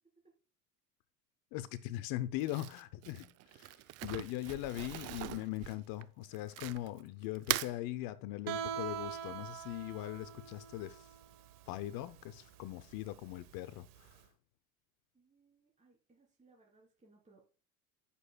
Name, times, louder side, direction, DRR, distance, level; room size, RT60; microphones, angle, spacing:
voice 1, 1.5-11.1 11.7-14.2, left 15 dB, 55° left, 0.6 m, -40 dB
Crumpling crinkling, 2.4-7.0 7.4-7.7, right 17 dB, 35° right, 0.4 m, -40 dB
Guitar, 8.5-14.2, right 8 dB, 65° right, 1.4 m, -44 dB
voice 2, 15.1-17.4, right 3 dB, 15° right, 3.5 m, -66 dB
14.5 x 6.9 x 2.3 m
hypercardioid pair, 80°, 43 cm